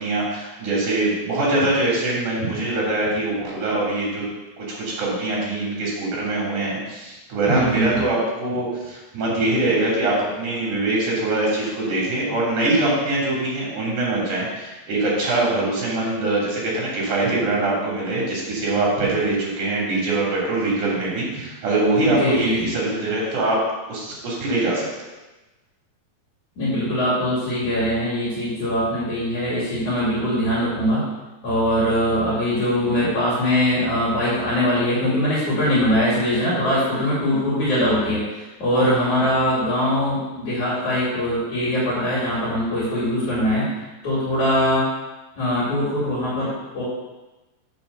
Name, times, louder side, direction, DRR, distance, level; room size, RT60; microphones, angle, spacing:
voice 1, 0.0-4.3 4.6-23.6 23.9-24.9, right 2 dB, 60° right, -4 dB, 4.4 m, -23 dB
voice 2, 7.5-8.0 22.0-22.7 26.6-31.0 31.4-43.7 44.0-44.8 45.4-46.8, equal, 60° left, -8 dB, 3.8 m, -22 dB
7.1 x 6.8 x 6.6 m, 1.1 s
omnidirectional pair, 4.1 m